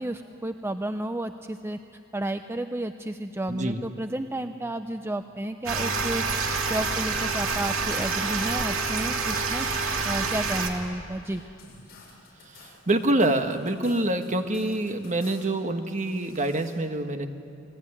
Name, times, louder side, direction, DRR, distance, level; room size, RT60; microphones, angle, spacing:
voice 1, 0.0-1.8 2.1-11.4, right 1 dB, 10° right, 8 dB, 0.6 m, -32 dB
voice 2, 3.5-3.8 12.5-17.3, right 1 dB, 35° right, 6 dB, 1.5 m, -26 dB
aquarium gurgle, 5.7-10.7, right 4 dB, 70° right, 2.6 m, -27 dB
sound 1, 9.7-10.8 11.2-15.5 15.8-16.7, left 3 dB, 50° left, 7.8 m, -51 dB
28.5 x 21.0 x 9.9 m, 2.7 s
head